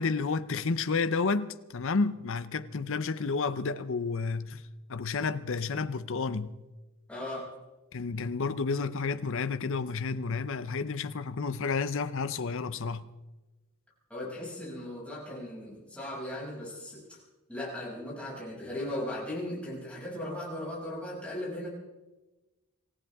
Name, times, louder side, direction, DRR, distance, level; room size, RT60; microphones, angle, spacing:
voice 1, 0.0-4.6 4.9-6.6 7.9-13.1, left 4 dB, 60° left, 0.7 m, -31 dB
voice 2, 7.1-7.5 14.1-17.2 17.5-21.7, left 1 dB, 5° left, 6.8 m, -37 dB
26.5 x 15.0 x 3.6 m
head